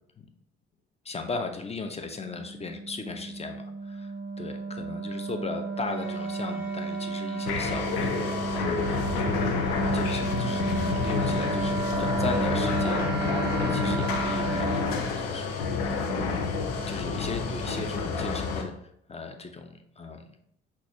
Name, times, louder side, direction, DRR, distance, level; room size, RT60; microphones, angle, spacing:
voice 1, 1.0-9.4 9.9-15.5 15.8-18.7 19.1-20.3, left 3 dB, 20° left, 6 dB, 0.5 m, -37 dB
Wind instrument woodwind instrument, 2.0-14.9, right 3 dB, 35° right, 0.8 m, -32 dB
sound 1, 5.8-11.8, left 4 dB, 35° left, 1.3 m, -46 dB
sound 2, 7.5-18.6, left 4 dB, 70° left, 0.6 m, -29 dB
5.9 x 2.4 x 2.8 m, 0.71 s
figure-of-eight pair, 50°, 31 cm